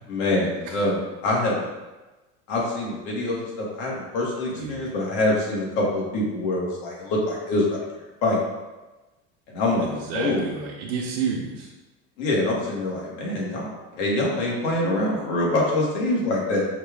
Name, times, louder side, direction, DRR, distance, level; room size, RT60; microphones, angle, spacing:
voice 1, 0.1-1.7 2.5-7.8 8.2-8.4 9.5-10.4 12.2-16.7, left 2 dB, 70° left, -3 dB, 1.5 m, -25 dB
voice 2, 4.5-4.9 9.8-11.7, right 5 dB, 85° right, -4 dB, 0.8 m, -30 dB
5.7 x 2.4 x 3.5 m, 1.1 s
cardioid pair, 160°, 31 cm